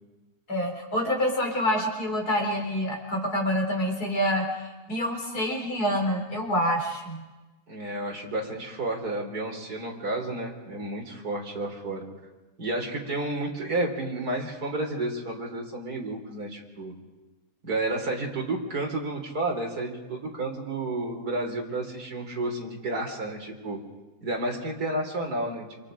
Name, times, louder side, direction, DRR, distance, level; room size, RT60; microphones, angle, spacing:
voice 1, 0.5-4.5 4.9-7.2, equal, 90° left, 2 dB, 4.5 m, -27 dB
voice 2, 7.7-12.0 12.6-16.9 17.6-23.8 24.2-25.7, right 2 dB, 85° right, 1 dB, 3.8 m, -31 dB
27.5 x 26.5 x 5.1 m, 1.2 s
omnidirectional pair, 1.6 m